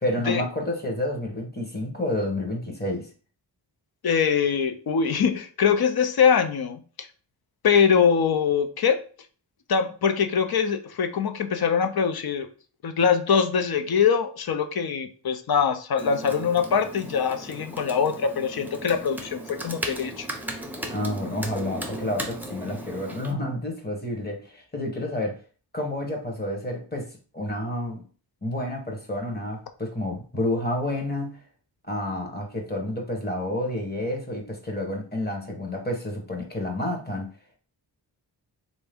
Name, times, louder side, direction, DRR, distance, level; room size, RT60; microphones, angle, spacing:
voice 1, 0.0-3.1 20.9-25.4 25.7-28.0 28.4-31.4 31.9-37.3, left 1 dB, 25° left, 2 dB, 1.0 m, -29 dB
voice 2, 4.0-7.1 7.6-9.0 9.7-12.5 12.8-20.3, left 6 dB, 60° left, 8 dB, 0.6 m, -23 dB
Computer keyboard, 16.0-23.3, right 1 dB, 5° right, 0.6 m, -36 dB
3.5 x 2.7 x 3.4 m, 0.38 s
wide cardioid pair, 110°, 42 cm